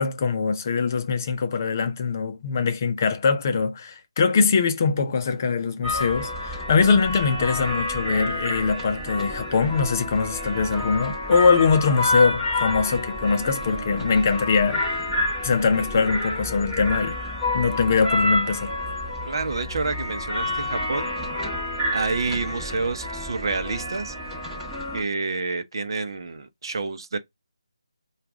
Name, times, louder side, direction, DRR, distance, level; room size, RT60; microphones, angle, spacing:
voice 1, 0.0-15.0 15.4-17.1 17.5-18.7, left 5 dB, 30° left, 0.7 m, -22 dB
sound 1, 5.8-25.0, left 2 dB, 10° right, 1.1 m, -29 dB
voice 2, 19.3-21.1 21.9-24.1 24.9-27.2, right 3 dB, 50° right, 0.8 m, -28 dB
4.7 x 2.4 x 3.5 m
figure-of-eight pair, 165°, 3 cm